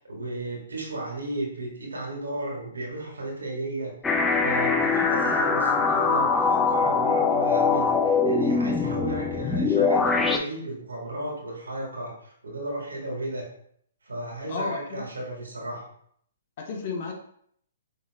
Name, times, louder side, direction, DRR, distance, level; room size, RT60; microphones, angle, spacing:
voice 1, 0.0-13.5 14.0-15.9, right 1 dB, 85° right, -1 dB, 1.7 m, -34 dB
sound 1, 4.0-10.4, left 4 dB, 10° left, 0.4 m, -22 dB
voice 2, 14.5-15.0 16.6-17.1, left 4 dB, 50° left, 1 dB, 1.1 m, -32 dB
5.3 x 3.8 x 2.3 m, 0.66 s
hypercardioid pair, 130°, 0 cm